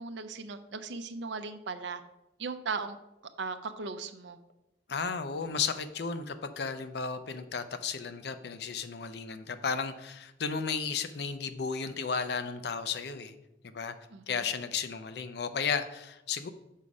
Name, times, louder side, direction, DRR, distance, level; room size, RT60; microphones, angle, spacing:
voice 1, 0.0-2.0 2.4-3.0 3.4-4.4 14.1-14.4, right 4 dB, 80° right, 10 dB, 0.6 m, -37 dB
voice 2, 4.9-13.3 13.6-13.9 14.3-16.5, left 5 dB, 60° left, 10 dB, 0.5 m, -34 dB
5.6 x 4.8 x 5.2 m, 0.94 s
head